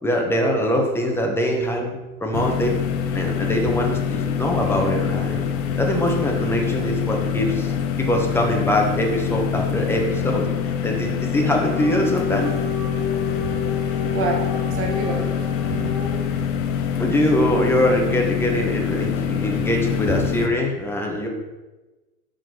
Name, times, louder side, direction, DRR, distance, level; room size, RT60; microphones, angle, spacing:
voice 1, 0.0-2.8 3.1-5.4 5.8-7.7 8.0-10.5 10.8-12.5 17.0-21.3, equal, 5° left, 0 dB, 1.0 m, -23 dB
sound 1, 2.3-20.5, left 8 dB, 35° left, 0.6 m, -25 dB
Dog, 11.2-16.4, left 6 dB, 15° right, 1.3 m, -30 dB
voice 2, 14.1-15.3 15.7-15.9, right 4 dB, 30° right, 2 dB, 1.4 m, -27 dB
6.3 x 4.4 x 3.9 m, 1.2 s
figure-of-eight pair, 100°, 44 cm